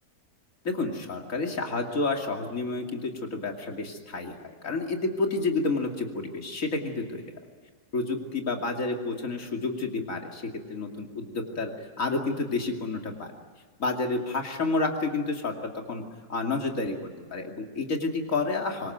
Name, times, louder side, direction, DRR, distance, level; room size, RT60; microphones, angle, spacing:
voice 1, 0.6-7.2 7.9-11.7 12.0-13.3 13.8-16.0 16.3-18.9, left 3 dB, 60° left, 2 dB, 3.0 m, -30 dB
26.0 x 22.0 x 9.2 m, 1.5 s
omnidirectional pair, 1.6 m